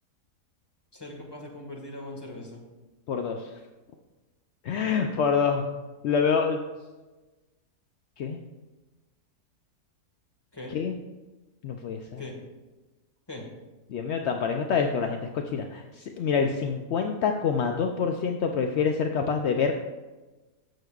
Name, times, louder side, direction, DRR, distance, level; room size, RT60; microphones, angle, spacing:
voice 1, 0.9-2.6 10.5-10.7 12.2-12.3 13.3-13.4, left 1 dB, 15° left, 0 dB, 1.4 m, -40 dB
voice 2, 3.1-3.5 4.6-5.6 6.0-6.6 8.2-8.4 10.7-11.0 11.6-12.2 13.9-19.7, left 6 dB, 70° left, 4 dB, 0.6 m, -26 dB
14.0 x 6.5 x 2.4 m, 1.2 s
omnidirectional pair, 1.7 m